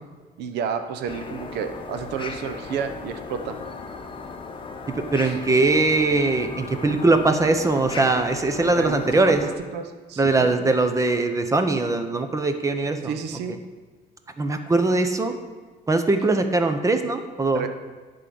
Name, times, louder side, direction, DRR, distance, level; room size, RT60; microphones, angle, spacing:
voice 1, 0.4-3.6 5.2-5.3 8.7-9.4 9.7-10.5 13.0-13.6 17.5-17.7, right 6 dB, 80° right, 8 dB, 0.8 m, -31 dB
sound 1, 1.1-9.5, left 4 dB, 30° left, 0.8 m, -36 dB
voice 2, 5.1-9.4 10.2-13.1 14.4-15.4 15.9-17.6, right 3 dB, 20° right, 7 dB, 0.8 m, -21 dB
10.5 x 3.8 x 6.9 m, 1.4 s
cardioid pair, 110°, 17 cm